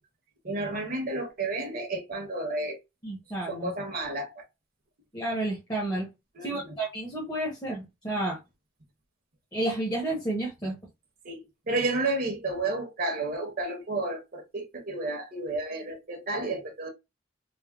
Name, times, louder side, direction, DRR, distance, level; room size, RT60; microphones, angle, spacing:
voice 1, 0.4-2.8 3.5-4.4 6.3-6.7 11.2-16.9, right 2 dB, 45° right, 0.8 m, -31 dB
voice 2, 3.0-3.7 5.1-6.1 6.4-8.4 9.5-10.8, right 1 dB, 20° left, 0.8 m, -31 dB
3.3 x 2.2 x 2.3 m
head